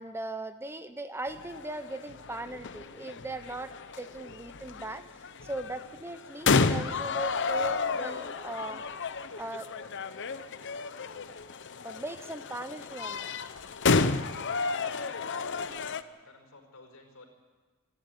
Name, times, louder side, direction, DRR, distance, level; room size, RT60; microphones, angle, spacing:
voice 1, 0.0-8.8 9.4-9.7 11.8-13.4, right 1 dB, 10° right, 10 dB, 0.7 m, -39 dB
sound 1, 1.3-16.0, left 4 dB, 55° left, 0.8 m, -31 dB
voice 2, 14.4-17.3, left 2 dB, 75° left, 4 dB, 4.8 m, -55 dB
27.0 x 11.5 x 9.7 m, 1.4 s
head